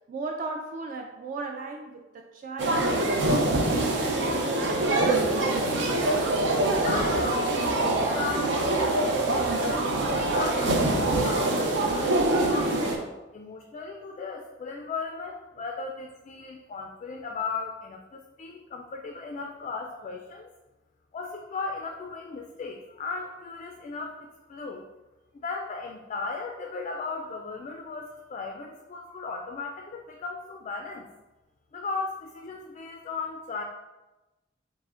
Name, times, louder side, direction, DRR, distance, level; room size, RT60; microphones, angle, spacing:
voice 1, 0.1-5.4, right 3 dB, 45° right, 3 dB, 0.3 m, -38 dB
sound 1, 2.6-13.0, right 2 dB, 80° right, 0.6 m, -24 dB
voice 2, 6.8-12.8 13.3-20.5 21.1-24.8 25.4-31.1 31.7-33.6, left 4 dB, 40° left, 2 dB, 0.3 m, -36 dB
4.7 x 2.0 x 3.7 m, 1.1 s
head